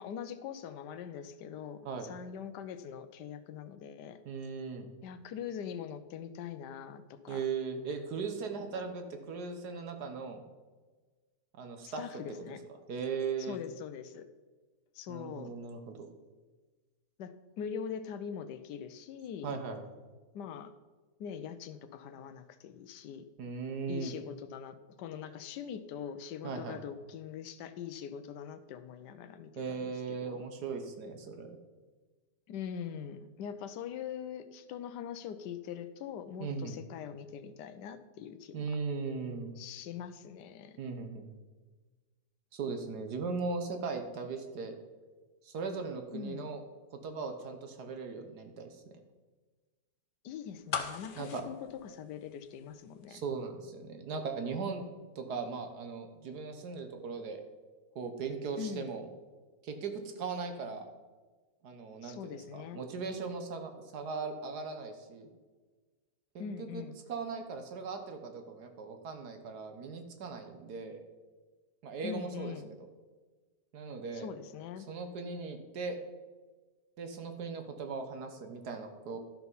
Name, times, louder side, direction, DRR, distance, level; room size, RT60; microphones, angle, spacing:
voice 1, 0.0-4.2 5.0-7.4 8.7-8.9 11.8-12.6 13.5-14.3 14.9-15.5 17.2-19.5 20.3-20.7 21.2-23.3 23.9-29.8 30.1-30.4 32.5-38.6 39.6-40.8 46.1-46.5 50.2-51.6 51.8-53.2 58.5-58.9 62.0-62.8 66.4-67.0 72.0-72.7 74.1-74.9, left 8 dB, 85° left, 11 dB, 1.3 m, -42 dB
voice 2, 4.2-4.9 7.3-10.4 11.5-12.0 12.5-12.6 12.9-13.6 15.1-16.1 19.4-19.8 23.4-24.1 26.4-26.8 29.6-31.5 36.4-36.8 38.5-39.5 40.8-41.3 42.5-44.8 45.4-46.6 46.9-48.8 51.2-51.4 53.1-54.8 55.1-57.4 57.9-59.1 59.6-60.9 61.6-65.3 66.3-66.8 67.1-71.0 71.8-72.8 73.7-74.3 74.9-76.0 77.0-79.2, right 5 dB, 75° right, 6 dB, 1.6 m, -38 dB
sound 1, 50.7-52.7 53.0-53.1, left 6 dB, 45° left, 0.7 m, -38 dB
12.5 x 5.9 x 5.5 m, 1.3 s
omnidirectional pair, 1.8 m